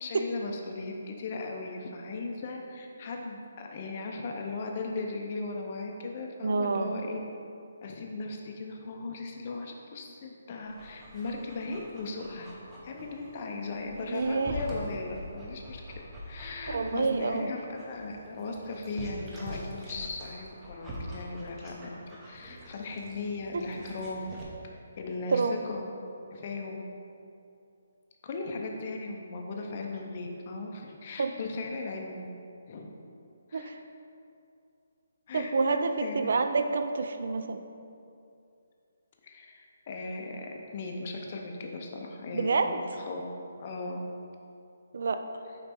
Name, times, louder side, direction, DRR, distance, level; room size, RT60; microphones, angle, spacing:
voice 1, 0.0-7.2 7.8-12.5 12.8-15.8 16.2-22.0 22.2-24.3 25.0-25.8 26.3-26.9 28.2-32.3 32.7-32.9 33.5-33.7 35.3-36.3 39.2-43.3 43.6-44.0, left 3 dB, 30° left, 1 dB, 0.5 m, -37 dB
voice 2, 6.4-7.0 14.0-14.5 16.7-17.5 25.3-25.6 31.2-31.3 33.5-33.8 35.3-37.6 42.3-42.8 44.9-45.2, right 4 dB, 55° right, 8 dB, 0.4 m, -28 dB
Dog, 10.6-24.4, equal, 10° right, 0.6 m, -44 dB
5.3 x 3.9 x 4.4 m, 2.5 s
hypercardioid pair, 175°, 0 cm